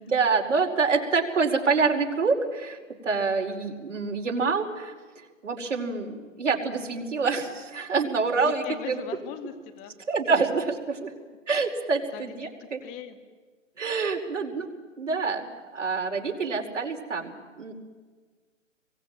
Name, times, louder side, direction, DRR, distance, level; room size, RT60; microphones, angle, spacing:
voice 1, 0.0-2.8 3.0-4.9 5.4-9.0 10.1-11.1 11.5-12.8 13.8-14.7 15.0-17.7, right 4 dB, 70° right, 2 dB, 4.9 m, -26 dB
voice 2, 8.4-9.9 12.1-13.2, left 10 dB, 20° left, 9 dB, 1.8 m, -40 dB
28.5 x 23.0 x 9.1 m, 1.4 s
hypercardioid pair, 155°, 38 cm